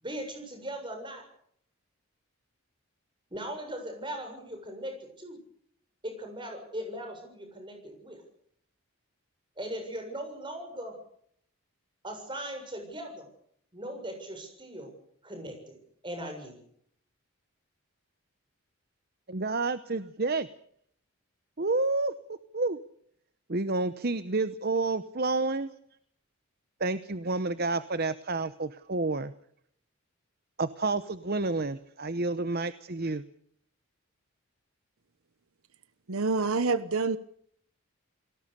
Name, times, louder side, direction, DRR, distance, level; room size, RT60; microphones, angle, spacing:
voice 1, 0.0-1.2 3.3-5.4 6.0-8.2 9.6-10.9 12.0-13.3 13.7-14.9 15.2-15.8 16.0-16.6, right 1 dB, 20° right, 4 dB, 7.2 m, -39 dB
voice 2, 19.3-20.5 21.6-22.8 23.5-25.7 26.8-29.3 30.6-33.2, right 3 dB, 45° right, 13 dB, 0.9 m, -29 dB
voice 3, 36.1-37.2, right 4 dB, 75° right, 14 dB, 1.0 m, -27 dB
29.5 x 19.5 x 6.8 m, 0.68 s
head